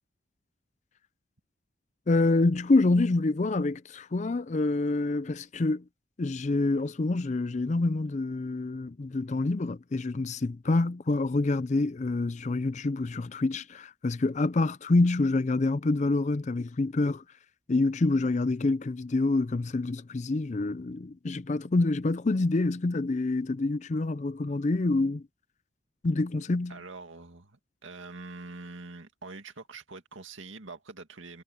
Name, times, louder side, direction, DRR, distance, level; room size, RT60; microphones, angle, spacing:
voice 1, 2.1-5.8 6.2-17.2 17.7-25.2 26.0-26.7, left 2 dB, 35° left, 0.4 m, -27 dB
voice 2, 26.7-31.4, right 3 dB, 80° right, 2.2 m, -44 dB
head